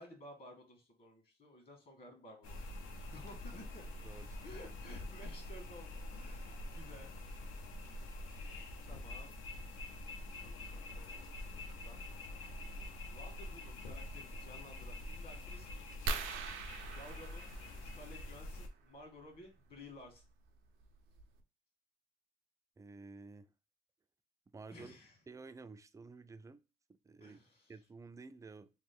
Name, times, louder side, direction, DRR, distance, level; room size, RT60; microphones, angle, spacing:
voice 1, 0.0-2.7 3.0-3.8 4.4-7.1 8.7-9.3 10.4-12.0 13.1-16.1 16.9-17.4 17.8-20.2 24.7-25.2 27.2-27.7, left 1 dB, 50° left, 1 dB, 1.5 m, -55 dB
sound 1, 2.4-18.7, left 1 dB, 80° left, 0.7 m, -46 dB
voice 2, 4.0-4.4 22.8-23.5 24.5-25.0 25.3-26.6 26.9-27.4 27.7-28.7, right 3 dB, 15° right, 11 dB, 0.3 m, -52 dB
sound 2, 16.1-18.4 20.0-20.2 20.8-20.9 21.2-21.4, right 4 dB, 90° right, 0.5 m, -41 dB
3.1 x 2.1 x 3.5 m, 0.32 s
cardioid pair, 90°, 20 cm